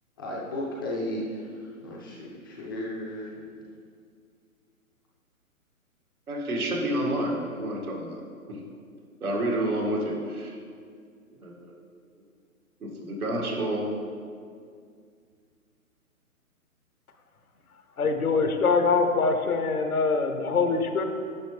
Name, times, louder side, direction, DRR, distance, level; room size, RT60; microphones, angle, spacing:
voice 1, 0.2-3.4, left 1 dB, 15° left, -4 dB, 0.5 m, -34 dB
voice 2, 6.3-8.2 8.5-8.6 9.2-10.5 11.4-11.6 12.8-13.9, right 1 dB, 75° right, -2 dB, 2.2 m, -29 dB
voice 3, 18.0-21.0, left 4 dB, 80° left, 6 dB, 1.0 m, -24 dB
10.0 x 6.2 x 3.3 m, 2.2 s
figure-of-eight pair, 135°, 43 cm